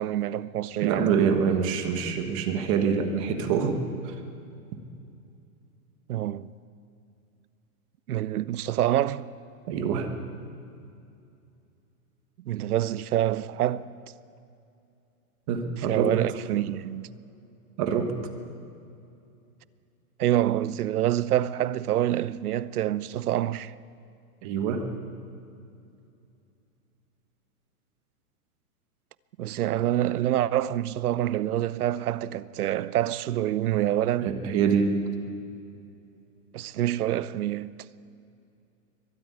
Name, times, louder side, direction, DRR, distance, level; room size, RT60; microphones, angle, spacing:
voice 1, 0.0-1.2 6.1-6.5 8.1-9.3 12.5-13.9 15.9-17.1 20.2-23.7 29.4-34.3 36.5-37.7, right 12 dB, 85° right, 0.8 m, -26 dB
voice 2, 0.8-4.2 9.7-10.1 15.5-16.1 17.8-18.1 24.4-24.9 34.2-34.9, right 6 dB, 25° right, 1.4 m, -25 dB
23.5 x 12.5 x 9.5 m
supercardioid pair, 180°, 43 cm